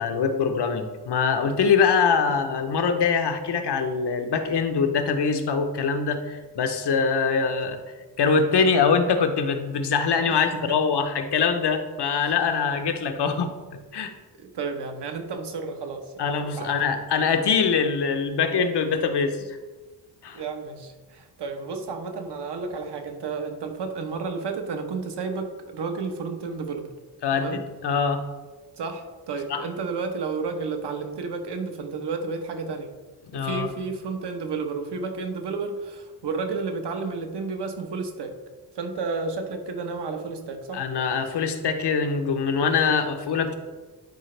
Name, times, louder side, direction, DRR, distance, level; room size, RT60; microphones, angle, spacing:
voice 1, 0.0-7.8 8.2-13.5 13.9-14.1 16.2-19.6 20.2-20.4 27.2-28.2 29.5-29.6 33.3-33.7 40.7-43.6, left 5 dB, 90° left, 7 dB, 0.9 m, -23 dB
voice 2, 10.3-10.8 12.2-12.4 14.4-16.8 20.3-26.9 27.3-27.6 28.8-32.9 33.3-38.4 38.7-40.8, right 4 dB, 85° right, 5 dB, 1.1 m, -32 dB
10.5 x 4.9 x 3.3 m, 1.3 s
wide cardioid pair, 170°, 40 cm